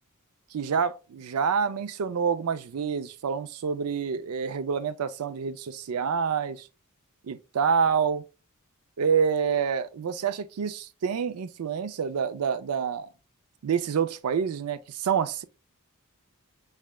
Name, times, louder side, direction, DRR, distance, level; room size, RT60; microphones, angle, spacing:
voice 1, 0.5-6.7 7.3-8.2 9.0-13.1 13.6-15.4, right 6 dB, 85° right, 0.4 m, -27 dB
4.7 x 3.2 x 2.2 m
head